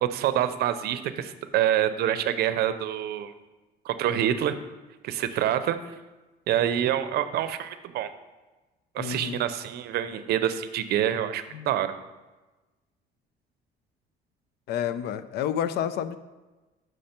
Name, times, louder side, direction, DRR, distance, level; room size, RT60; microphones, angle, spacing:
voice 1, 0.0-3.3 3.8-4.6 5.0-5.8 6.5-8.1 8.9-11.9, right 11 dB, 70° right, 12 dB, 0.6 m, -26 dB
voice 2, 9.0-9.4 11.5-11.7 14.7-16.2, left 9 dB, 75° left, 13 dB, 0.5 m, -30 dB
6.4 x 6.3 x 4.3 m, 1.2 s
cardioid pair, 110°, 17 cm